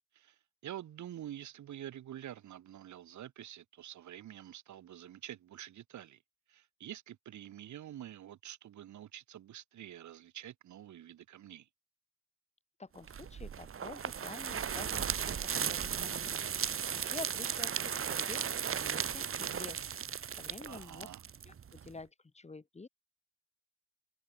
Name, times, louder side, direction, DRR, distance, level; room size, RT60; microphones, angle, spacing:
voice 1, 0.1-6.2 6.5-11.7 20.7-21.2, right 11 dB, 70° right, 3.6 m, -47 dB
voice 2, 12.8-20.0 20.4-21.1 21.5-22.9, left 3 dB, 20° left, 2.4 m, -49 dB
sound 1, 13.1-21.9, right 7 dB, 45° right, 2.0 m, -36 dB
open air
cardioid pair, 90°, 30 cm